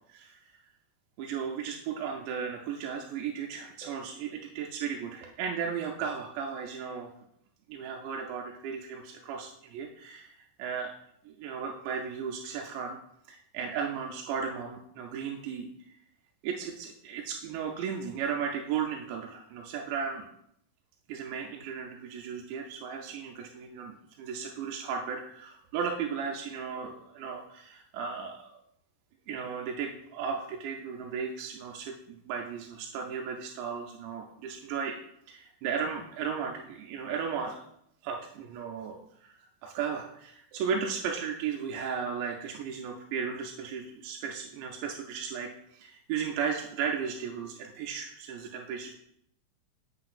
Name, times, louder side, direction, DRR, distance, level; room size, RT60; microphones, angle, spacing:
voice 1, 0.1-0.6 1.2-7.1 7.7-10.9 11.3-13.0 13.3-16.0 16.4-20.3 21.1-28.6 29.3-35.0 35.3-37.6 38.0-49.0, right 6 dB, 90° right, 1 dB, 2.8 m, -35 dB
7.7 x 6.2 x 2.4 m, 0.73 s
omnidirectional pair, 4.9 m